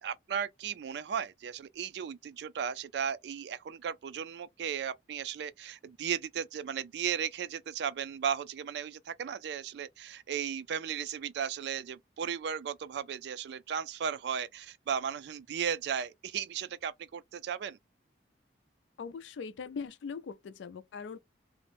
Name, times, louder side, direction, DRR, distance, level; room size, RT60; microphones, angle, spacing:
voice 1, 0.0-17.8, right 8 dB, 65° right, 0.3 m, -35 dB
voice 2, 19.0-21.2, left 5 dB, 85° left, 0.4 m, -41 dB
2.5 x 2.0 x 3.2 m
head